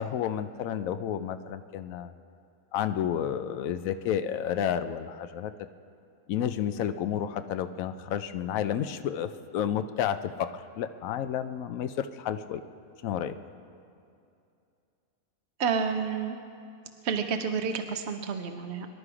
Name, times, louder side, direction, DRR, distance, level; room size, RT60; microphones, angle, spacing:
voice 1, 0.0-2.1 2.7-5.5 6.3-12.6 13.0-13.3, left 9 dB, 80° left, 10 dB, 1.0 m, -31 dB
voice 2, 15.6-16.4 17.0-18.9, right 6 dB, 60° right, 6 dB, 0.9 m, -29 dB
24.5 x 11.5 x 4.9 m, 2.5 s
omnidirectional pair, 1.5 m